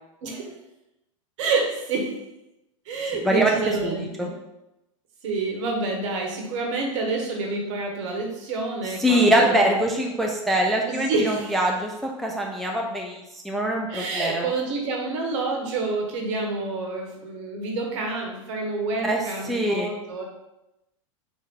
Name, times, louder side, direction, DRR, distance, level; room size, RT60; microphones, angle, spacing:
voice 1, 1.4-2.2 2.9-4.3 5.2-9.7 10.9-11.5 13.9-20.2, right 3 dB, 60° right, 1 dB, 1.0 m, -28 dB
voice 2, 3.8-4.3 9.0-14.5 19.0-19.2 19.4-19.9, right 1 dB, ahead, 0 dB, 0.4 m, -23 dB
3.5 x 2.6 x 3.6 m, 0.91 s
hypercardioid pair, 100°, 18 cm